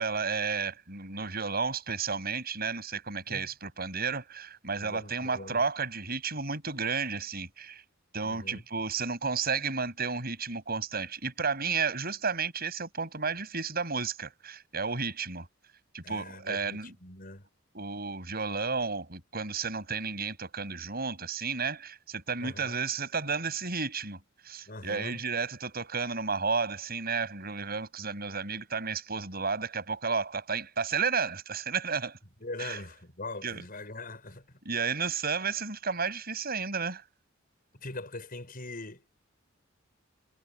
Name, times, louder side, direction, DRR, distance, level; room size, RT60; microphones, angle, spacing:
voice 1, 0.0-7.8 8.1-15.5 15.9-16.9 17.7-24.2 24.4-32.2 32.6-32.8 33.4-33.6 34.7-37.0, right 5 dB, 50° right, 7.4 m, -32 dB
voice 2, 4.8-5.6 8.2-8.6 16.0-17.5 22.4-22.8 24.7-25.2 32.4-34.6 37.7-39.0, left 2 dB, 45° left, 6.0 m, -42 dB
head